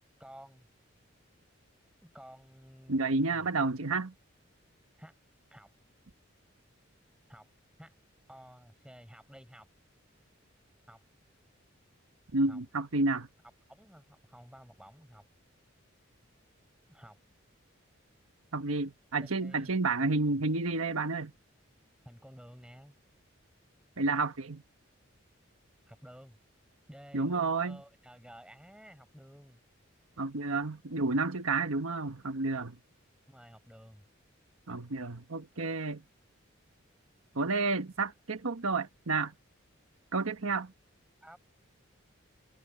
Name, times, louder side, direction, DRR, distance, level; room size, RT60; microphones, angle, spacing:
voice 1, 0.2-0.7 2.0-3.5 5.0-5.2 5.5-5.7 7.3-7.5 7.8-8.0 8.3-9.7 10.9-11.0 12.5-12.6 13.7-15.2 16.9-17.2 19.4-19.8 22.0-22.9 25.9-26.4 26.9-29.6 33.3-34.1 41.2-41.4, equal, 5° right, 7.6 m, -53 dB
voice 2, 2.9-4.1 12.3-13.3 18.5-21.3 24.0-24.6 27.1-27.8 30.2-32.8 34.7-36.0 37.3-39.3 40.1-40.7, right 3 dB, 85° right, 1.3 m, -30 dB
head